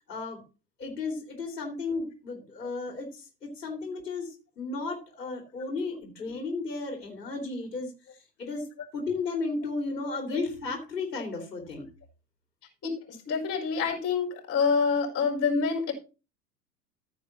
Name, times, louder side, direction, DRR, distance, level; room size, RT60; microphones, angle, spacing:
voice 1, 0.1-0.4 0.8-7.9 8.4-8.7 8.9-11.8, left 3 dB, 75° left, 2 dB, 2.9 m, -34 dB
voice 2, 12.8-15.9, left 5 dB, 30° left, 0 dB, 4.7 m, -27 dB
14.5 x 7.8 x 2.9 m, 0.32 s
figure-of-eight pair, 85°, 50 cm